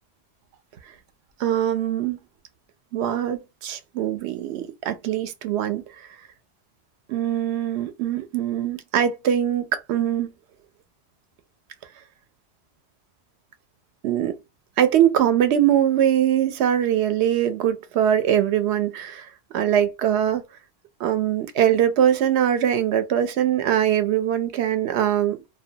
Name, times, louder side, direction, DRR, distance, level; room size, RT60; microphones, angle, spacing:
voice 1, 1.4-2.2 2.9-5.8 7.1-10.3 14.0-14.4 14.8-20.4 21.0-25.4, right 10 dB, 90° right, 0.9 m, -22 dB
2.3 x 2.2 x 2.7 m
omnidirectional pair, 1.1 m